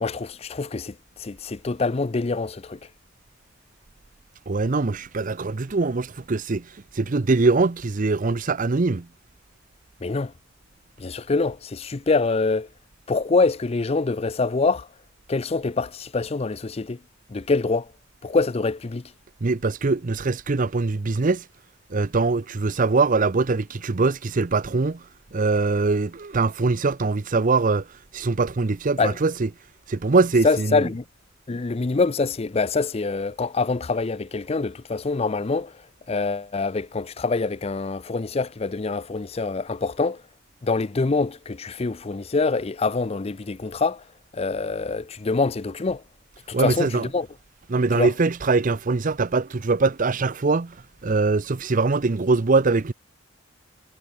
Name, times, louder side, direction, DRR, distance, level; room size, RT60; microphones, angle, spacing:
voice 1, 0.0-2.8 10.0-10.3 11.0-12.7 13.1-14.9 15.3-17.0 17.3-17.9 18.2-19.0 29.0-29.2 30.4-31.0 31.5-35.7 36.1-40.2 40.6-44.0 44.3-46.0 46.5-47.3 47.9-48.1, left 3 dB, 30° left, 0.5 m, -25 dB
voice 2, 4.5-6.6 7.0-9.1 19.4-21.4 21.9-25.0 25.3-27.8 28.1-29.5 29.9-30.8 46.5-47.1 47.7-50.8 51.0-52.9, right 3 dB, 40° right, 0.6 m, -22 dB
head